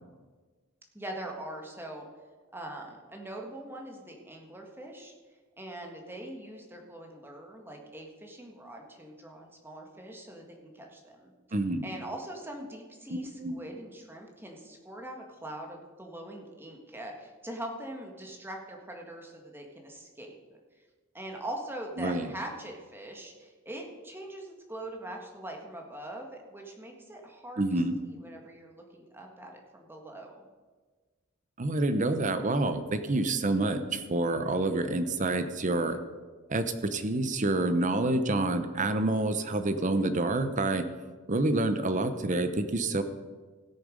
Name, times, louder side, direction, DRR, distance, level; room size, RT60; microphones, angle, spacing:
voice 1, 0.9-2.0 2.5-5.1 5.6-11.3 11.8-20.6 21.1-30.5, right 1 dB, 10° right, 1 dB, 1.6 m, -42 dB
voice 2, 11.5-11.9 13.1-13.6 22.0-22.3 27.6-27.9 31.6-36.0 36.5-40.9 41.3-43.0, right 2 dB, 40° right, 9 dB, 0.8 m, -28 dB
17.0 x 6.7 x 5.2 m, 1.4 s
head